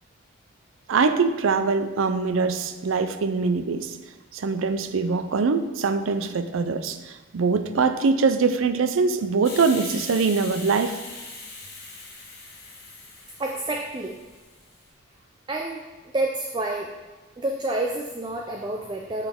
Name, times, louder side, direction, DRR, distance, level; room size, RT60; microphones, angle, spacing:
voice 1, 0.9-3.9 4.3-11.0, right 4 dB, 80° right, 10 dB, 0.5 m, -23 dB
Hiss, 9.4-14.8, left 3 dB, 50° left, 1.3 m, -41 dB
voice 2, 13.4-14.2 15.5-15.8 16.1-16.9 17.4-19.3, right 2 dB, 20° right, 1 dB, 0.3 m, -28 dB
8.1 x 3.9 x 3.6 m, 1.3 s
head